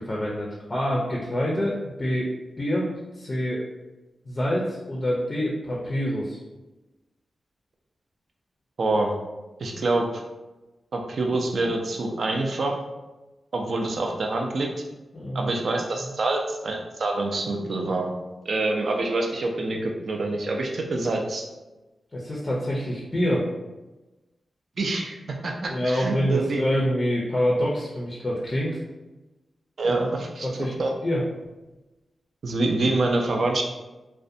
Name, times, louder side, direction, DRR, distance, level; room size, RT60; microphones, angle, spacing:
voice 1, 0.0-3.6 4.3-6.4 15.1-15.5 22.1-23.5 25.7-28.8 29.8-30.0 30.4-30.7 31.0-31.2, equal, 30° left, -3 dB, 0.4 m, -26 dB
voice 2, 8.8-9.1 9.6-10.2 10.9-12.8 13.5-14.7 15.3-18.1 18.5-21.5 24.8-26.6 29.8-30.9 32.4-33.6, right 2 dB, 65° right, 2 dB, 0.4 m, -26 dB
2.5 x 2.1 x 2.6 m, 1.1 s
wide cardioid pair, 110°, 0 cm